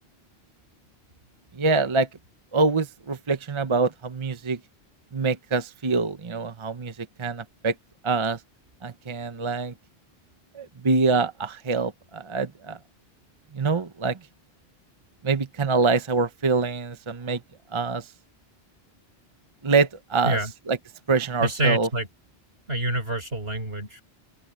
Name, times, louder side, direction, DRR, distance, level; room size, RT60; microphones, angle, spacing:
voice 1, 1.5-2.1 2.5-4.6 5.1-7.7 8.0-8.4 8.8-9.7 10.5-12.8 13.5-14.2 15.2-17.4 17.7-18.1 19.6-20.4 20.7-20.8 21.1-21.9, right 4 dB, 30° right, 0.8 m, -25 dB
voice 2, 21.4-22.1 22.7-24.0, right 1 dB, 75° right, 6.1 m, -26 dB
open air
omnidirectional pair, 1.0 m